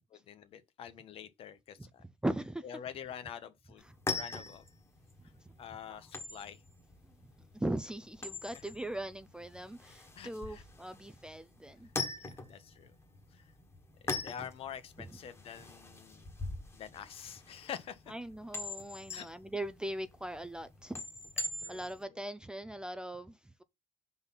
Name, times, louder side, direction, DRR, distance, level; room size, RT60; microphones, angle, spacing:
voice 1, 0.0-2.0 2.6-3.8 4.1-4.6 5.6-6.6 8.4-8.7 10.1-10.6 12.5-12.9 13.3-13.5 14.0-16.3 16.7-18.1 19.1-19.3 21.6-22.3, left 9 dB, 55° left, 0.9 m, -46 dB
voice 2, 2.2-2.6 7.5-11.9 15.0-15.1 18.1-21.0 21.7-23.6, right 1 dB, 5° right, 0.4 m, -39 dB
sound 1, 3.8-22.0, left 3 dB, 20° left, 1.4 m, -42 dB
5.4 x 4.0 x 5.6 m
cardioid pair, 125°, 12 cm